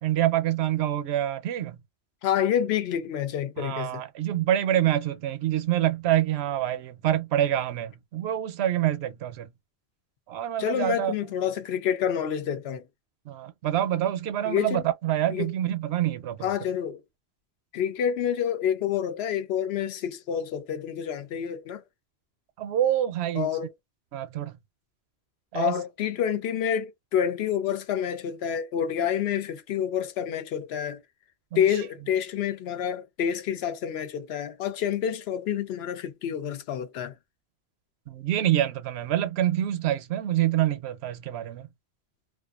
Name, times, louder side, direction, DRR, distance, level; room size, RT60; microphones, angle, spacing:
voice 1, 0.0-1.8 3.6-9.5 10.3-11.1 13.3-16.5 22.6-23.5 24.1-24.6 25.5-25.8 31.5-31.6 38.1-41.7, right 12 dB, 80° right, 0.8 m, -26 dB
voice 2, 2.2-4.0 10.6-12.8 14.4-14.9 15.3-15.5 16.4-17.0 17.7-21.8 23.3-23.7 25.5-31.0 31.5-37.1, left 9 dB, 75° left, 0.8 m, -28 dB
2.4 x 2.2 x 2.3 m
omnidirectional pair, 1.1 m